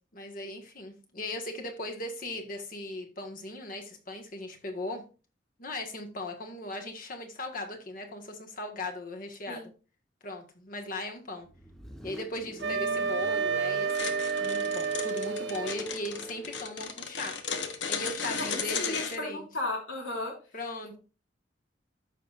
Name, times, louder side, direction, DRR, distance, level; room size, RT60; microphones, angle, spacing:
voice 1, 0.1-5.0 5.6-9.7 10.2-11.5 12.0-17.3 17.9-19.5 20.5-21.0, left 2 dB, 50° left, 3 dB, 1.5 m, -38 dB
Car, 11.4-16.9, left 1 dB, ahead, 0.8 m, -41 dB
Wind instrument woodwind instrument, 12.6-15.8, right 5 dB, 65° right, 0.6 m, -30 dB
sound 1, 13.9-19.2, left 6 dB, 75° left, 1.0 m, -35 dB
voice 2, 18.2-20.3 20.8-21.0, left 2 dB, 90° left, 1 dB, 2.9 m, -35 dB
13.5 x 5.6 x 2.5 m, 0.34 s
head